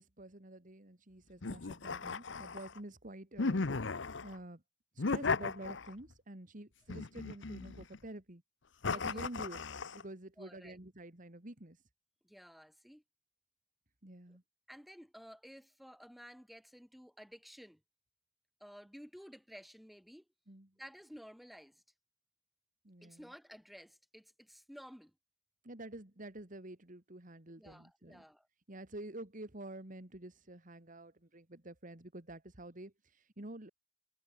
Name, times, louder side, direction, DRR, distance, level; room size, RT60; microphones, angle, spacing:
voice 1, 0.0-3.7 4.2-4.6 4.9-8.4 8.9-9.6 9.9-11.8 14.0-14.4 20.5-20.7 22.8-23.2 25.6-28.2 28.7-33.7, right 1 dB, 45° right, 2.5 m, -49 dB
sound 1, 1.4-2.8 3.4-4.4 5.0-6.1 6.9-8.0 8.8-10.0, left 4 dB, 70° left, 0.9 m, -36 dB
voice 2, 8.9-9.3 10.4-10.8 12.2-13.0 14.3-14.4 14.7-17.8 18.6-20.2 20.8-21.8 23.0-25.1 27.6-28.5, equal, ahead, 6.7 m, -54 dB
head